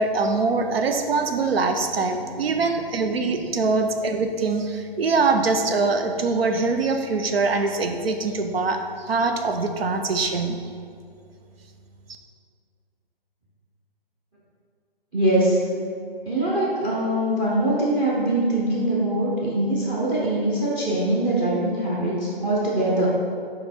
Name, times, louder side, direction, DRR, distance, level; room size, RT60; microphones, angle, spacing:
voice 1, 0.0-8.8 9.1-10.6, right 3 dB, 75° right, 6 dB, 0.9 m, -23 dB
voice 2, 15.1-15.7 16.3-23.1, right 1 dB, 15° right, -5 dB, 0.7 m, -23 dB
5.9 x 4.9 x 4.3 m, 2.3 s
hypercardioid pair, 145°, 30 cm